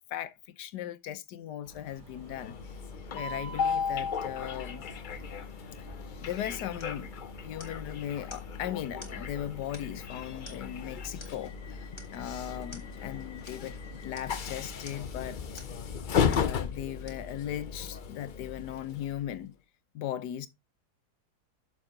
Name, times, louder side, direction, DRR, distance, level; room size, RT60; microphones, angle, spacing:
voice 1, 0.1-2.6 3.1-4.8 6.2-7.1 7.4-11.8 12.1-13.8 14.0-15.6 16.3-19.5 19.9-20.5, left 11 dB, 80° left, 1.3 m, -38 dB
sound 1, 1.6-15.9, right 1 dB, 50° right, 3.7 m, -52 dB
Train, 2.1-19.4, left 6 dB, 65° left, 0.4 m, -35 dB
sound 2, 6.8-7.0 7.6-7.9 8.3-8.5 9.0-9.2 9.7-10.1 10.4-10.8 11.2-11.5 12.0-12.2 12.7-12.9 13.5-13.6 14.1-14.3 14.8-15.1 15.6-15.8 16.3-16.5 17.1-17.3 17.9-18.0, left 2 dB, 15° left, 2.4 m, -50 dB
7.2 x 6.3 x 3.7 m
omnidirectional pair, 1.8 m